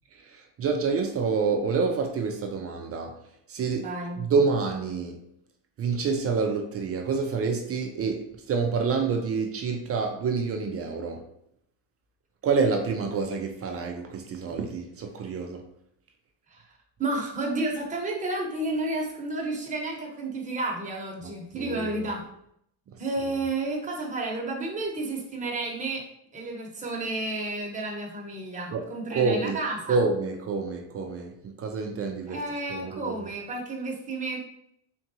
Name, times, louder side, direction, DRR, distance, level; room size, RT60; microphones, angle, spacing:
voice 1, 0.0-3.2 3.5-3.9 4.2-5.2 5.8-11.3 12.4-15.6 21.5-22.0 22.9-23.0 28.7-29.6 29.9-32.4 32.7-33.3, right 4 dB, 30° right, 0.4 m, -28 dB
voice 2, 3.8-4.2 16.5-16.7 17.0-22.2 23.0-26.0 26.3-30.0 32.3-34.4, right 2 dB, 15° right, 1.0 m, -31 dB
3.8 x 3.3 x 2.8 m
supercardioid pair, 105°, 49 cm